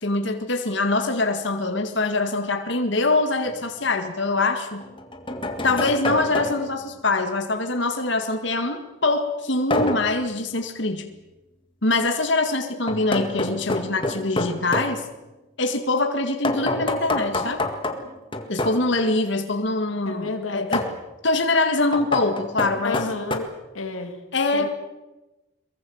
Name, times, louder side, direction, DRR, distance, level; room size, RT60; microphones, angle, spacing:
voice 1, 0.0-4.8 5.6-11.1 11.8-15.0 15.6-17.6 18.5-20.9 21.2-23.0 24.3-24.7, left 2 dB, 60° left, 5 dB, 2.0 m, -24 dB
sound 1, 3.5-3.6 4.8-6.8 9.7-10.2 12.9-15.0 16.4-18.9 20.7-21.0 21.9-23.4, left 2 dB, 25° left, 1.8 m, -27 dB
voice 2, 20.1-20.7 22.8-24.2 24.5-24.7, left 3 dB, 85° left, 5 dB, 2.2 m, -31 dB
23.0 x 22.5 x 7.2 m, 1.1 s
head